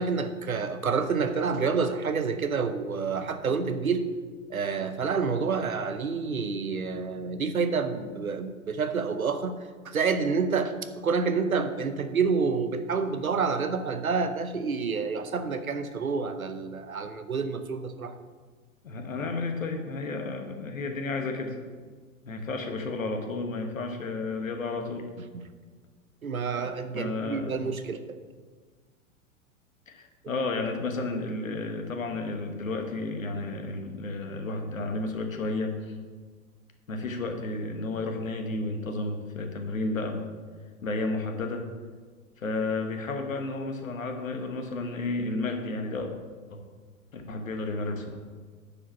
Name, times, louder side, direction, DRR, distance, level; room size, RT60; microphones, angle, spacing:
voice 1, 0.0-4.1 4.5-9.6 9.8-18.1 26.2-28.2, right 5 dB, 85° right, 10 dB, 0.8 m, -28 dB
voice 2, 18.8-21.6 22.2-25.1 26.9-27.5 29.9-36.0 36.9-40.2 40.8-41.7 42.4-46.1 46.5-46.6 47.1-48.2, left 3 dB, 75° left, 5 dB, 1.4 m, -32 dB
9.7 x 4.8 x 5.8 m, 1.5 s
figure-of-eight pair, 100°, 41 cm